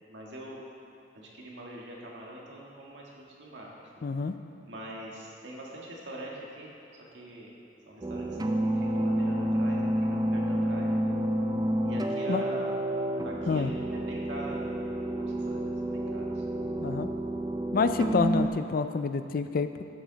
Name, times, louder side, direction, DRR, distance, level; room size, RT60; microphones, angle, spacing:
voice 1, 0.1-0.6 1.1-3.9 4.6-6.7 7.1-7.5 7.9-8.3 8.6-9.9 10.3-10.9 11.8-12.7 13.2-16.5, right 1 dB, 80° right, -3 dB, 1.8 m, -44 dB
voice 2, 4.0-4.3 12.3-12.4 13.5-13.7 16.8-17.1 17.7-19.8, left 4 dB, 50° left, 10 dB, 0.4 m, -28 dB
sound 1, 8.0-18.5, right 1 dB, 20° right, 0.4 m, -29 dB
12.0 x 7.4 x 4.0 m, 2.6 s
head